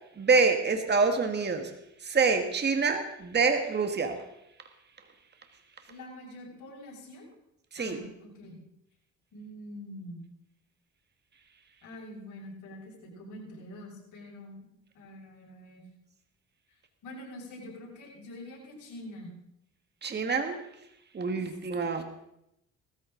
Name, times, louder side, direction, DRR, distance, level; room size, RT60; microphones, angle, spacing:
voice 1, 0.2-1.7 2.0-4.2 7.7-8.0 20.0-20.6 21.1-22.0, right 4 dB, 35° right, 5 dB, 1.7 m, -26 dB
voice 2, 5.9-7.3 7.8-8.6 9.3-10.3 11.8-14.7 14.9-15.8 17.0-19.3, left 1 dB, 80° left, -3 dB, 6.5 m, -45 dB
19.0 x 13.5 x 3.9 m, 0.81 s
cardioid pair, 90°, 30 cm